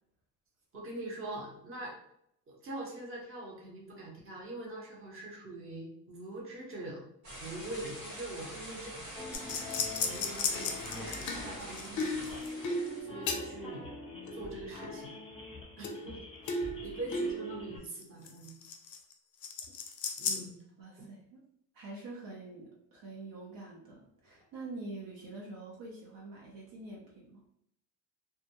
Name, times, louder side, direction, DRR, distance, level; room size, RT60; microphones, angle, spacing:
voice 1, 0.7-1.9 2.5-7.0 7.4-9.0 9.5-9.6 10.0-12.3 13.0-13.9 14.3-15.1 15.8-16.2 16.6-18.5 20.2-20.5 21.0-21.1, right 2 dB, 35° right, -3 dB, 0.8 m, -43 dB
sound 1, 7.2-13.0, equal, 80° right, 1.4 m, -45 dB
sound 2, 9.2-17.8, left 2 dB, 15° left, 0.7 m, -46 dB
sound 3, 9.3-13.8 14.3-15.1 15.8-16.2 16.5-19.1 19.4-20.4, left 3 dB, 50° left, 0.5 m, -35 dB
voice 2, 20.8-21.4 21.7-27.4, right 2 dB, 65° right, -3 dB, 0.7 m, -46 dB
2.3 x 2.1 x 2.8 m, 0.75 s
cardioid pair, 115°, 38 cm